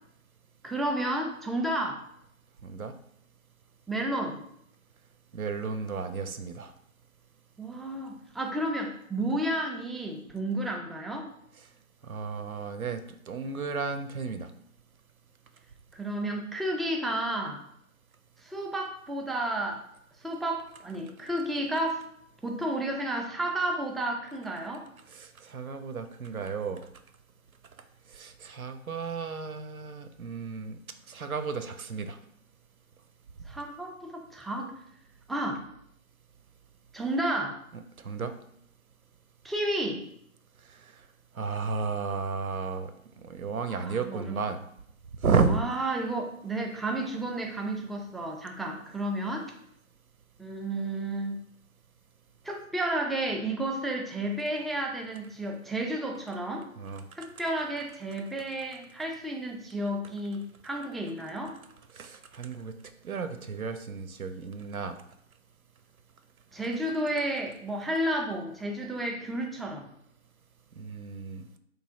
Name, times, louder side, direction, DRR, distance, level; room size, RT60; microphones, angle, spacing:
voice 1, 0.6-2.0 3.9-4.4 7.6-11.3 15.9-17.6 18.4-19.8 20.2-22.1 22.4-24.9 33.5-34.7 35.3-35.6 36.9-37.6 39.4-40.1 43.7-44.3 45.5-49.5 50.4-51.4 52.4-56.7 57.2-61.6 66.5-69.9, right 1 dB, ahead, 1 dB, 0.3 m, -32 dB
voice 2, 2.6-2.9 5.3-6.7 12.0-13.0 13.3-14.5 25.1-26.8 28.1-30.8 31.1-32.2 38.0-38.3 40.7-40.9 41.3-42.9 43.2-44.6 45.2-45.6 56.8-57.1 61.9-62.7 63.0-65.0 70.8-71.5, right 5 dB, 75° right, 9 dB, 0.6 m, -32 dB
3.2 x 2.4 x 3.6 m, 0.71 s
figure-of-eight pair, 175°, 43 cm